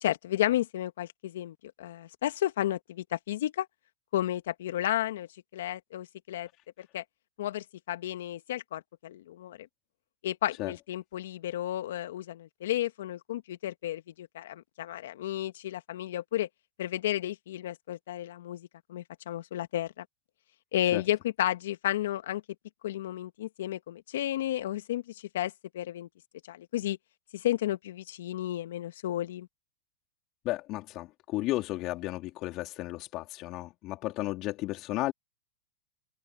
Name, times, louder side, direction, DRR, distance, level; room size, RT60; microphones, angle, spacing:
voice 1, 0.0-3.7 4.1-6.5 6.8-7.0 7.4-9.7 10.2-16.5 16.8-20.1 20.7-22.4 22.8-26.1 26.5-27.0 27.3-29.5, left 13 dB, 70° left, 1.8 m, -32 dB
voice 2, 30.5-35.1, left 18 dB, 45° left, 3.3 m, -33 dB
hypercardioid pair, 110°, 0 cm